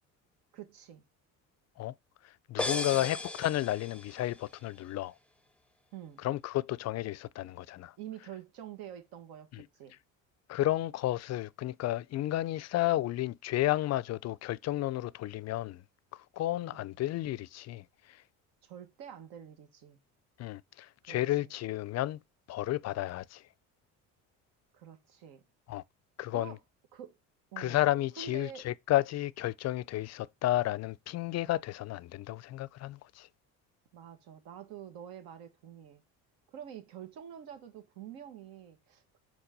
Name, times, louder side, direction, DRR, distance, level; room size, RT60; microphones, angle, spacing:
voice 1, 0.5-1.0 2.9-3.1 5.9-6.2 8.0-10.0 16.5-16.8 18.6-20.0 21.1-21.5 24.7-25.4 26.3-26.6 26.9-27.1 27.5-27.8 28.2-28.7 33.9-36.0 36.5-39.2, right 9 dB, 75° right, 1.7 m, -47 dB
voice 2, 2.2-5.1 6.2-7.9 9.5-9.7 10.5-15.8 16.1-18.2 20.4-22.2 22.5-23.4 25.7-25.8 26.2-26.6 27.6-33.3, left 15 dB, 45° left, 0.4 m, -32 dB
sound 1, 2.6-4.4, left 2 dB, 5° left, 0.6 m, -36 dB
4.5 x 4.4 x 5.3 m
supercardioid pair, 85°, 36 cm